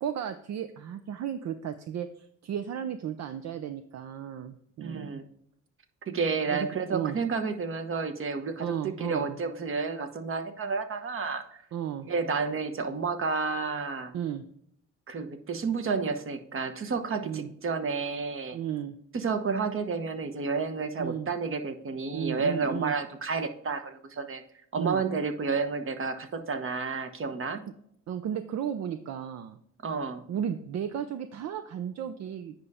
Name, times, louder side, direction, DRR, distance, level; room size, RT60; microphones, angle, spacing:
voice 1, 0.0-5.2 6.5-7.2 8.6-9.2 11.7-12.1 14.1-14.4 17.2-17.5 18.5-19.0 21.0-21.3 22.1-22.9 24.8-25.0 28.1-29.6 30.3-32.5, right 9 dB, 60° right, 10 dB, 0.6 m, -34 dB
voice 2, 4.8-5.2 6.1-11.6 12.1-14.1 15.1-18.6 19.1-24.4 24.7-27.6 29.8-30.2, right 4 dB, 45° right, 8 dB, 1.1 m, -31 dB
9.1 x 5.5 x 3.6 m, 0.70 s
cardioid pair, 90°, 30 cm